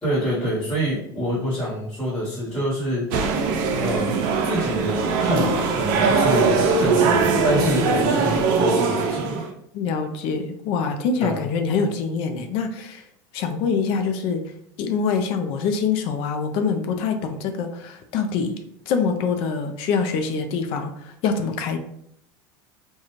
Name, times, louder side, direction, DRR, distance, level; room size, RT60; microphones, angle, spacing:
voice 1, 0.0-3.1 3.8-9.4 11.2-11.4, equal, 10° left, -10 dB, 1.3 m, -26 dB
sound 1, 3.1-9.5, right 4 dB, 70° right, 0.5 m, -21 dB
voice 2, 9.7-13.0 13.3-14.4 14.8-18.6 18.9-21.8, left 5 dB, 60° left, 6 dB, 0.4 m, -25 dB
2.4 x 2.2 x 3.0 m, 0.73 s
supercardioid pair, 120°, 11 cm